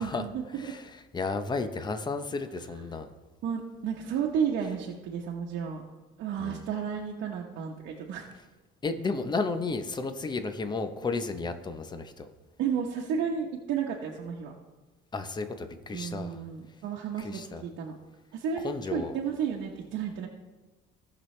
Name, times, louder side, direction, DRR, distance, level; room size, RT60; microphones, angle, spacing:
voice 1, 0.0-0.7 3.4-5.8 6.2-8.3 12.6-14.5 15.9-17.9 18.3-20.3, right 7 dB, 70° right, -2 dB, 1.1 m, -32 dB
voice 2, 0.5-3.1 6.4-6.7 8.8-12.3 15.1-16.4 17.2-17.6 18.6-19.2, left 3 dB, 25° left, 8 dB, 0.8 m, -33 dB
17.0 x 6.1 x 3.3 m, 1.2 s
cardioid pair, 120°, 19 cm